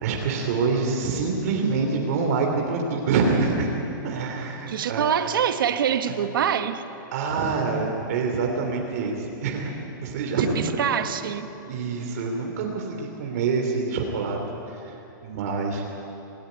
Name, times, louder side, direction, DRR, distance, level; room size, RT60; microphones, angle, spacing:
voice 1, 0.0-3.7 4.0-5.1 7.1-9.7 10.0-10.8 11.6-14.4 14.7-15.9, right 4 dB, 50° right, 1 dB, 3.2 m, -26 dB
voice 2, 4.7-6.8 10.3-11.5, right 8 dB, 80° right, 9 dB, 1.6 m, -25 dB
27.0 x 16.0 x 9.7 m, 2.9 s
supercardioid pair, 175°, 11 cm